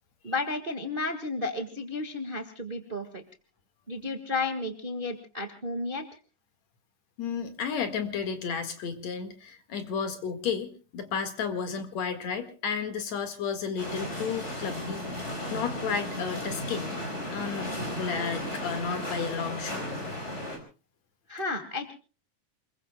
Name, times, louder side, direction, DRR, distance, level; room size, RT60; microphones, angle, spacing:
voice 1, 0.2-3.2 3.9-6.0 21.3-21.9, left 2 dB, 25° right, 7 dB, 1.2 m, -32 dB
voice 2, 7.2-15.0 15.5-17.0 17.3-19.9, left 6 dB, 60° left, 8 dB, 2.9 m, -32 dB
sound 1, 13.8-20.6, left 1 dB, 20° left, 4.6 m, -35 dB
28.5 x 21.5 x 2.3 m, 0.36 s
omnidirectional pair, 3.8 m